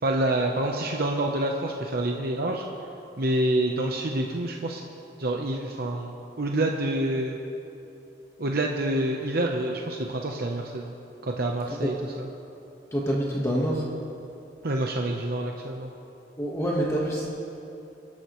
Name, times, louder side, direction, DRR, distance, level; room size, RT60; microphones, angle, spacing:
voice 1, 0.0-2.6 3.2-4.8 5.2-7.4 8.4-10.9 11.2-12.3 14.6-15.9, right 1 dB, 60° right, 1 dB, 0.9 m, -27 dB
voice 2, 12.9-13.9 16.4-17.3, equal, 15° left, -4 dB, 1.4 m, -26 dB
26.0 x 11.5 x 3.2 m, 2.9 s
head